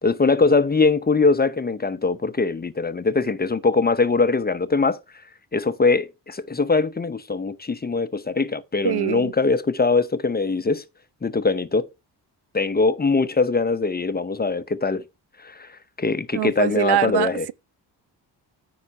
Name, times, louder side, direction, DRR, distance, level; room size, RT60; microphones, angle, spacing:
voice 1, 0.0-5.0 5.5-10.8 11.2-11.9 12.5-15.0 15.4-15.7 16.0-17.5, left 4 dB, 20° left, 0.8 m, -22 dB
voice 2, 8.8-9.3 16.3-17.5, right 13 dB, 65° right, 0.5 m, -23 dB
9.6 x 4.1 x 5.6 m
supercardioid pair, 55°, 43 cm